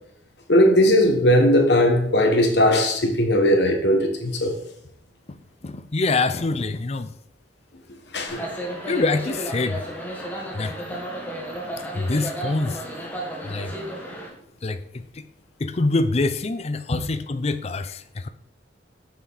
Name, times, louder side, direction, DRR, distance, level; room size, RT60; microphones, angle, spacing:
voice 1, 0.5-4.5 8.1-8.4 10.9-11.0, left 1 dB, 70° left, 1.4 m, -18 dB
voice 2, 5.6-7.1 8.9-9.8 10.5-10.7 11.9-12.8 13.4-13.7 14.6-15.3 15.6-18.3, left 3 dB, 35° left, 0.5 m, -25 dB
sound 1, 8.3-14.3, right 1 dB, 10° left, 1.4 m, -33 dB
7.1 x 6.4 x 4.1 m
head